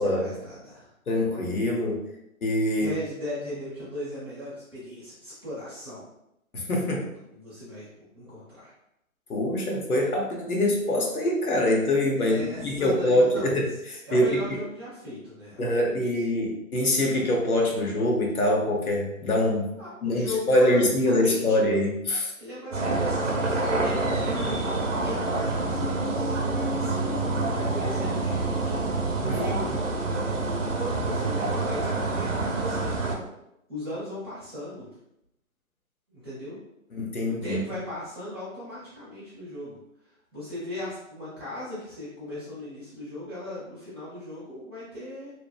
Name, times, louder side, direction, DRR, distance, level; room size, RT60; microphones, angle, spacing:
voice 1, 0.0-0.9 2.7-6.1 6.7-7.9 8.1-8.7 12.2-13.8 14.1-16.2 19.8-21.5 22.4-29.8 30.7-33.2 33.7-34.9 36.1-36.6 37.3-39.8 40.3-45.3, left 1 dB, 15° right, -10 dB, 0.8 m, -38 dB
voice 2, 1.1-2.0 2.4-2.9 6.5-7.0 9.3-13.6 13.9-14.6 15.6-19.7 20.0-22.3 29.2-29.4 36.9-37.6, left 1 dB, 90° left, 0 dB, 0.9 m, -24 dB
sound 1, 22.7-33.2, right 2 dB, 60° right, 0.7 m, -27 dB
2.9 x 2.1 x 2.4 m, 0.82 s
hypercardioid pair, 160°, 42 cm